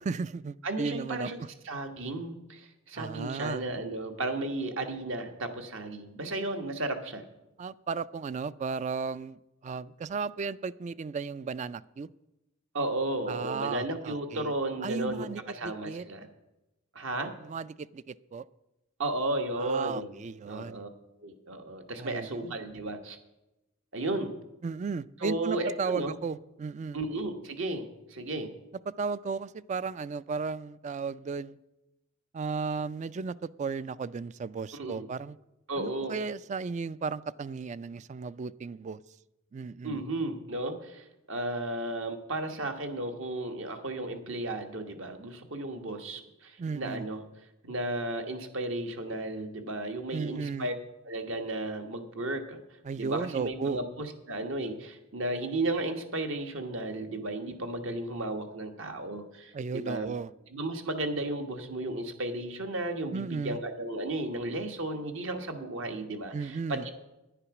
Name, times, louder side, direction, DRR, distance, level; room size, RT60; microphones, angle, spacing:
voice 1, 0.1-1.3 3.0-3.6 7.6-12.1 13.3-14.5 14.8-16.0 17.4-18.4 19.6-20.9 22.0-22.6 24.6-27.0 29.0-31.6 32.3-35.4 35.8-39.0 39.5-40.0 46.6-47.1 50.1-50.7 52.8-53.8 59.5-60.3 63.1-63.6 66.3-66.9, right 5 dB, 35° right, 18 dB, 0.3 m, -35 dB
voice 2, 0.6-1.4 1.6-7.2 12.7-16.3 16.9-17.3 19.0-20.2 20.4-20.9 21.2-23.2 23.9-24.3 25.2-26.2 26.9-28.5 34.7-35.1 35.7-36.1 39.8-47.2 47.6-50.7 51.0-52.6 53.0-60.1 60.5-66.9, right 2 dB, 65° right, 6 dB, 1.4 m, -34 dB
10.0 x 10.0 x 6.0 m, 0.95 s
head